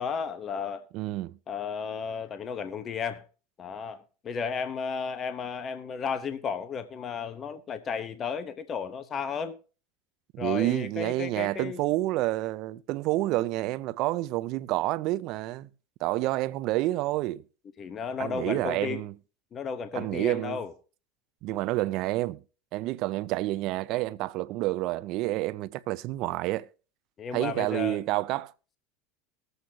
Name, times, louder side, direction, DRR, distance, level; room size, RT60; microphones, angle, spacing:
voice 1, 0.0-0.9 1.5-3.2 3.6-9.6 10.4-11.9 17.8-19.0 19.5-20.7 27.2-28.0, left 6 dB, 35° left, 1.0 m, -33 dB
voice 2, 0.9-1.4 10.3-15.7 16.0-17.4 18.2-19.1 19.9-20.6 21.4-22.4 22.7-26.7 27.3-28.5, right 17 dB, 60° right, 0.5 m, -29 dB
20.0 x 8.0 x 2.8 m
hypercardioid pair, 95°, 0 cm